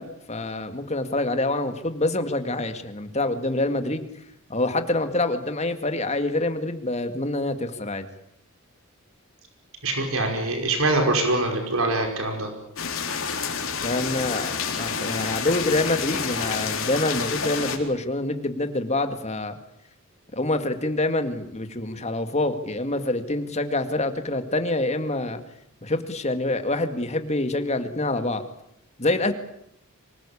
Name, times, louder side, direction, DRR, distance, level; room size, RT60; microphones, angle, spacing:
voice 1, 0.0-4.0 4.5-8.1 13.8-19.5 20.3-25.4 25.8-28.4 29.0-29.3, left 2 dB, 30° left, 8 dB, 2.1 m, -26 dB
voice 2, 9.8-12.5, right 2 dB, 70° right, 3 dB, 5.3 m, -24 dB
sound 1, 12.8-17.8, left 6 dB, 70° left, 4.0 m, -29 dB
25.0 x 19.5 x 8.6 m, 0.77 s
head